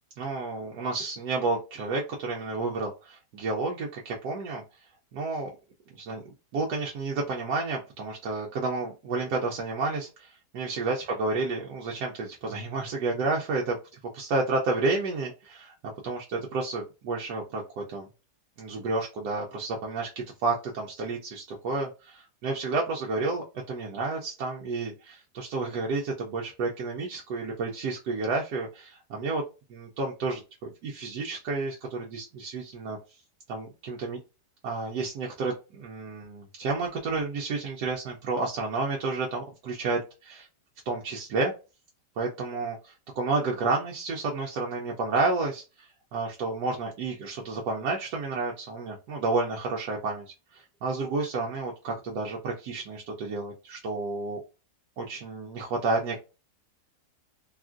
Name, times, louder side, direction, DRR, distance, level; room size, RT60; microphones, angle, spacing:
voice 1, 0.2-4.6 5.1-5.5 5.9-18.1 18.6-29.4 29.7-33.2 33.5-34.2 34.6-40.5 40.9-41.5 42.2-54.4 55.0-56.2, right 3 dB, 75° right, -1 dB, 1.1 m, -31 dB
3.5 x 2.4 x 2.4 m, 0.30 s
omnidirectional pair, 1.8 m